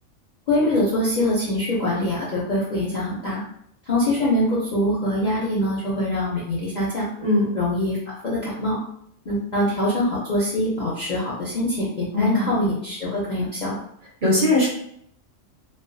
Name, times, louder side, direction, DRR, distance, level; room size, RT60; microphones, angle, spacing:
voice 1, 0.5-3.4 3.9-7.1 7.5-8.8 9.3-13.8, left 1 dB, 55° left, -6 dB, 0.5 m, -24 dB
voice 2, 7.2-7.5 12.1-12.5 14.2-14.7, left 2 dB, 45° right, -6 dB, 0.8 m, -19 dB
2.3 x 2.2 x 2.5 m, 0.71 s
omnidirectional pair, 1.3 m